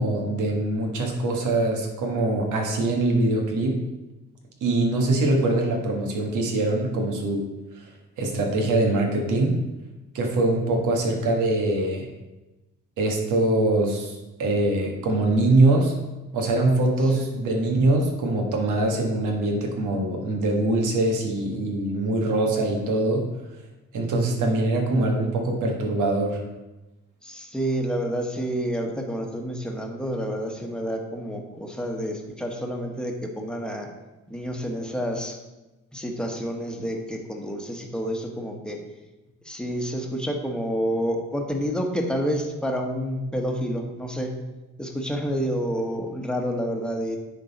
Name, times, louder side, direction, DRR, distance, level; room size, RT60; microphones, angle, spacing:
voice 1, 0.0-3.8 4.6-7.5 7.7-7.9 8.2-9.6 10.1-12.1 13.0-15.9 16.3-23.3 23.9-26.4, right 2 dB, 80° right, 2 dB, 1.5 m, -23 dB
voice 2, 27.2-33.9 34.3-35.4 35.9-38.8 39.4-44.3 44.8-47.2, equal, 5° left, 2 dB, 1.2 m, -29 dB
9.7 x 3.9 x 4.1 m, 1.1 s
cardioid pair, 90°, 30 cm